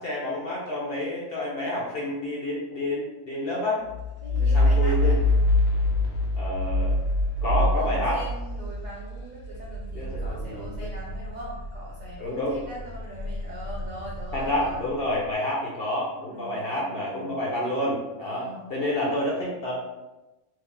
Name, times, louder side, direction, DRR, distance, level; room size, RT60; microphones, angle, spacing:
voice 1, 0.0-3.8 4.4-5.2 6.3-7.0 7.4-8.2 9.9-10.9 12.2-12.6 14.3-19.7, left 1 dB, 50° left, -4 dB, 0.8 m, -29 dB
sound 1, 3.9-12.1 12.5-15.1, left 1 dB, 80° left, 1.1 m, -26 dB
voice 2, 4.2-5.2 7.4-14.9 16.3-17.4 18.2-18.6, right 1 dB, 55° right, -6 dB, 0.5 m, -41 dB
3.2 x 2.4 x 3.6 m, 1.1 s
omnidirectional pair, 1.5 m